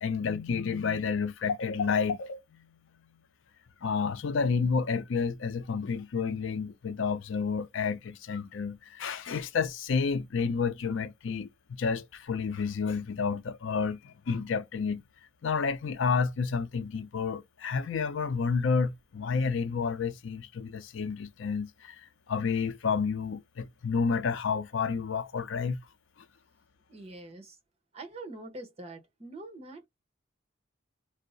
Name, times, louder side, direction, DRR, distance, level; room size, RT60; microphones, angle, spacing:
voice 1, 0.0-2.4 3.8-15.0 15.4-22.0 22.3-25.8, left 5 dB, 70° left, 0.5 m, -30 dB
voice 2, 26.9-27.6 27.9-29.9, right 2 dB, 30° right, 0.9 m, -44 dB
2.7 x 2.1 x 3.8 m
head